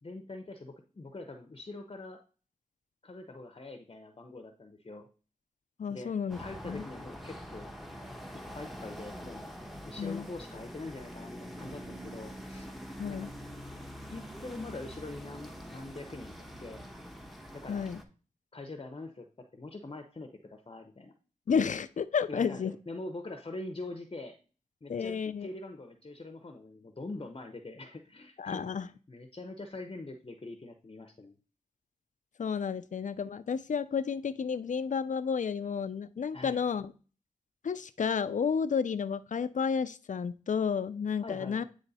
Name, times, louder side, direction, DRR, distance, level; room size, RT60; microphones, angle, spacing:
voice 1, 0.0-2.2 3.0-5.1 5.9-7.7 8.3-9.5 9.8-12.7 13.1-13.3 14.1-16.8 17.5-17.9 18.5-19.3 19.5-21.1 22.3-24.4 24.8-31.4 36.3-36.6 41.2-41.6, left 2 dB, 40° left, 5 dB, 0.8 m, -44 dB
voice 2, 5.8-6.4 6.6-6.8 10.0-10.3 13.0-13.3 17.7-18.0 21.5-22.7 24.9-25.5 28.4-28.9 32.4-36.9 37.6-41.6, left 6 dB, 65° left, 13 dB, 0.4 m, -31 dB
sound 1, 6.3-18.0, equal, ahead, 1.0 m, -45 dB
9.0 x 3.2 x 4.1 m, 0.37 s
cardioid pair, 50°, 14 cm